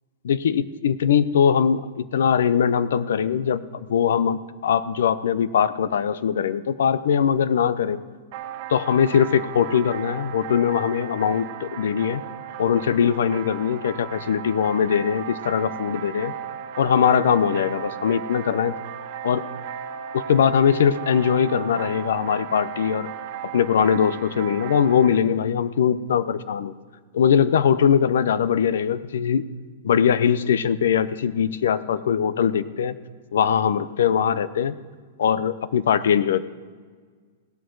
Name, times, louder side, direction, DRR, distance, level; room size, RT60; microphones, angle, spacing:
voice 1, 0.2-8.0 8.7-12.2 12.6-16.3 16.8-18.7 19.2-19.4 20.1-23.1 23.5-26.7 27.1-29.4 29.8-33.0 33.3-34.7 35.2-36.4, left 8 dB, 75° left, 16 dB, 0.6 m, -21 dB
sound 1, 8.3-25.2, right 9 dB, 35° right, 1.4 m, -36 dB
16.5 x 12.5 x 3.9 m, 1.5 s
supercardioid pair, 175°, 0 cm